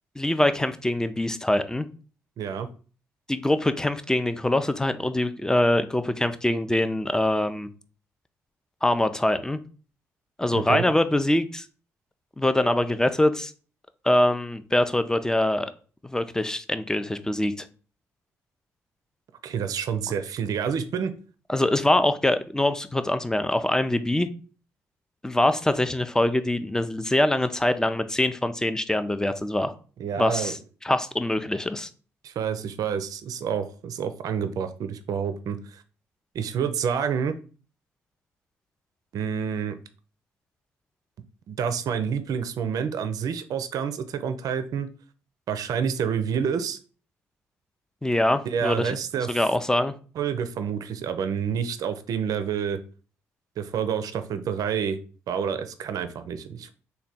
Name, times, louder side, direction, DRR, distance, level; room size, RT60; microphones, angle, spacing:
voice 1, 0.2-1.9 3.3-7.7 8.8-9.6 10.4-11.6 12.4-13.5 14.0-15.7 16.0-17.7 21.5-24.3 25.2-29.7 30.2-30.6 30.8-31.9 48.0-49.0 49.3-49.9, left 1 dB, 10° left, 11 dB, 0.4 m, -24 dB
voice 2, 2.4-2.7 10.5-10.9 19.4-21.1 30.0-30.6 32.2-35.8 36.3-37.3 39.1-39.8 41.5-44.9 45.5-46.8 48.5-49.4 50.2-52.8 53.6-55.0 55.3-56.7, right 7 dB, 60° right, 10 dB, 0.4 m, -28 dB
3.3 x 2.2 x 4.0 m, 0.38 s
hypercardioid pair, 50°, 7 cm